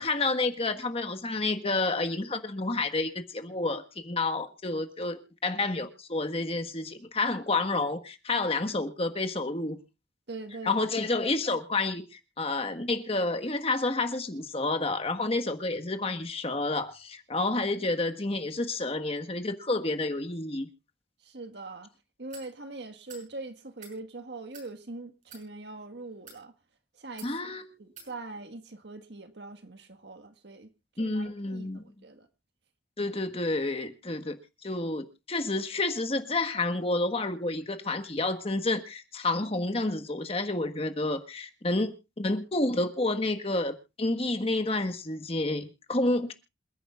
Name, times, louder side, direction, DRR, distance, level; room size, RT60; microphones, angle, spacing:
voice 1, 0.0-9.8 10.6-20.7 27.2-27.7 31.0-31.8 33.0-34.4 34.6-46.3, left 2 dB, 35° left, 1.5 m, -29 dB
voice 2, 10.3-10.9 21.2-21.9 22.2-26.5 26.9-27.3 27.8-32.3 33.0-33.1, right 2 dB, 75° right, 1.6 m, -42 dB
sound 1, 22.3-22.5 23.1-23.3 23.7-24.0 24.5-24.7 25.2-25.4 26.1-26.4 27.2-27.3 28.0-28.1, right 5 dB, 45° right, 6.3 m, -48 dB
27.5 x 10.0 x 2.4 m
head